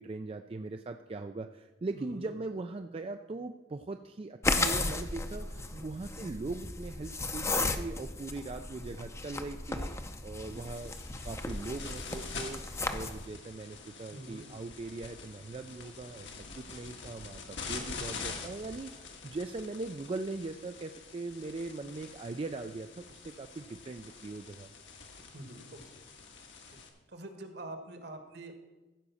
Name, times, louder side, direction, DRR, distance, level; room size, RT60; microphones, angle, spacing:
voice 1, 0.0-9.9 10.2-10.9 11.2-24.7, right 3 dB, 30° right, 7 dB, 0.4 m, -40 dB
voice 2, 1.9-2.3 5.5-5.8 14.1-14.5 25.3-26.0 27.1-28.5, right 1 dB, 60° right, 6 dB, 1.5 m, -45 dB
sound 1, 4.4-13.3, left 2 dB, 15° left, 0.6 m, -35 dB
sound 2, 10.4-26.9, left 4 dB, 70° left, 1.5 m, -46 dB
14.5 x 5.2 x 7.0 m, 1.1 s
head